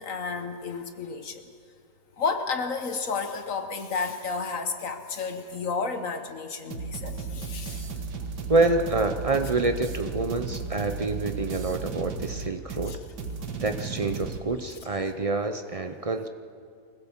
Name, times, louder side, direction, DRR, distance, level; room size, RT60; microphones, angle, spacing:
voice 1, 0.0-1.4 2.2-8.1 12.9-13.0 13.5-13.6, left 4 dB, 55° left, 7 dB, 1.4 m, -32 dB
sound 1, 6.7-14.4, right 4 dB, 80° right, 2.0 m, -35 dB
voice 2, 8.5-13.0 13.6-16.3, right 3 dB, 50° right, 7 dB, 0.4 m, -27 dB
24.5 x 16.0 x 7.3 m, 2.2 s
omnidirectional pair, 1.8 m